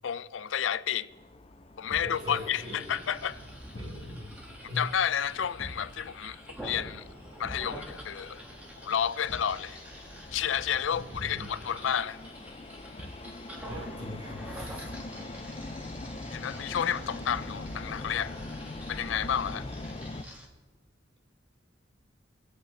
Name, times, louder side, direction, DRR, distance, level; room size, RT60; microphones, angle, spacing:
voice 1, 0.0-1.1 1.8-3.4 4.8-7.0 7.4-8.4 8.8-9.8 10.3-12.2 16.3-18.4 18.9-19.7, left 9 dB, 80° left, 0.4 m, -31 dB
sound 1, 1.1-20.2, left 2 dB, 30° left, 0.5 m, -44 dB
Thump thud, 1.9-2.2 3.7-4.1 5.6-5.9 7.4-7.8 9.3-9.6 11.1-11.5 13.0-13.3 14.8-15.1, equal, 50° left, 1.6 m, -44 dB
voice 2, 2.0-2.8 3.7-4.3 4.7-4.9 10.9-11.5 13.6-14.9, left 1 dB, 30° right, 3.8 m, -40 dB
sound 2, 2.1-20.5, equal, 10° right, 1.7 m, -47 dB
24.0 x 8.5 x 3.3 m
head